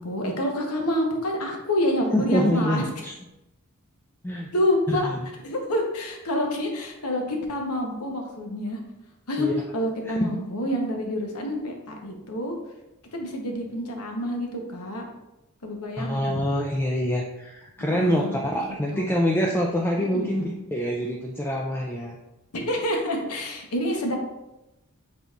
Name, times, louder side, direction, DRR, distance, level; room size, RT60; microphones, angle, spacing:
voice 1, 0.0-2.8 4.5-5.1 5.4-8.8 9.3-9.5 9.7-12.5 13.1-15.1 15.6-16.4 17.9-19.0 19.9-20.5 22.5-24.2, left 1 dB, 75° left, 2 dB, 0.9 m, -28 dB
voice 2, 2.1-3.1 4.2-4.5 4.9-5.2 9.4-9.6 10.0-10.3 16.0-22.2, equal, 10° left, -2 dB, 0.3 m, -25 dB
5.1 x 4.0 x 2.3 m, 0.95 s
head